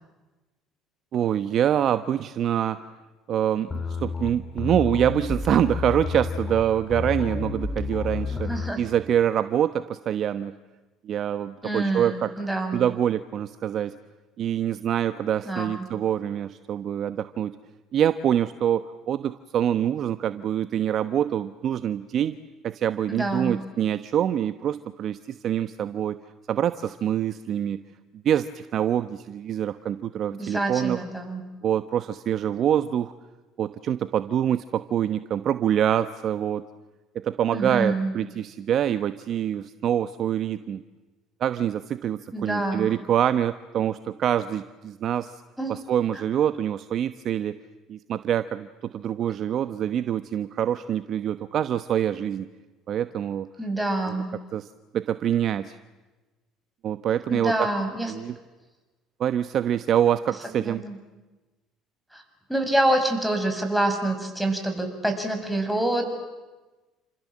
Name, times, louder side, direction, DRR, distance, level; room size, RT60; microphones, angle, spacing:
voice 1, 1.1-2.8 3.3-10.5 11.0-12.3 12.7-13.9 14.4-17.5 17.9-22.4 22.6-26.2 26.5-27.8 28.2-31.0 31.6-33.1 33.6-36.6 37.1-40.8 41.4-45.4 45.7-47.6 47.9-52.5 52.9-53.5 54.5-54.7 54.9-55.8 56.8-57.7 58.1-58.4 59.2-60.8, right 10 dB, 55° right, 11 dB, 1.0 m, -25 dB
sound 1, 3.7-8.7, left 4 dB, 25° left, 3.9 m, -30 dB
voice 2, 8.3-8.8 11.6-12.8 15.5-15.8 23.1-23.7 30.3-31.4 37.5-38.1 42.3-42.9 45.6-45.8 49.3-49.4 53.6-54.3 57.3-58.1 60.6-61.0 62.1-62.2 62.5-66.1, right 1 dB, ahead, 4 dB, 7.0 m, -26 dB
29.5 x 26.5 x 7.5 m, 1.2 s
hypercardioid pair, 70°, 0 cm